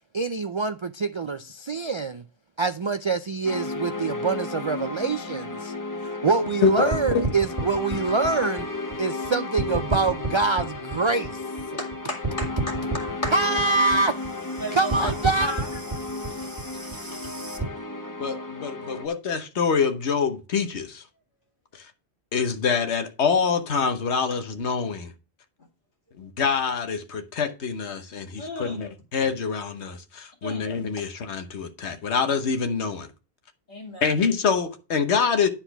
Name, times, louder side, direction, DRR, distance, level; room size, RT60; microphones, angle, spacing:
voice 1, 0.1-2.2 2.6-5.7 6.1-8.7 9.0-11.4 13.3-14.1 14.7-15.5, right 4 dB, 45° right, 0.4 m, -25 dB
sound 1, 3.4-19.1, left 3 dB, 20° left, 0.7 m, -33 dB
sound 2, 6.9-9.3 9.6-11.9 12.2-17.6, right 3 dB, 25° right, 1.8 m, -31 dB
voice 2, 11.8-12.5 13.0-13.3 14.6-15.1 15.4-15.7 16.3-16.4 17.1-17.2 28.4-28.8 30.4-30.6 33.7-34.1, left 1 dB, 50° left, 2.3 m, -34 dB
voice 3, 18.2-21.0 21.7-21.9 22.3-25.1 26.2-33.1 34.0-35.5, left 6 dB, 90° left, 1.3 m, -25 dB
10.0 x 4.4 x 5.8 m
omnidirectional pair, 1.1 m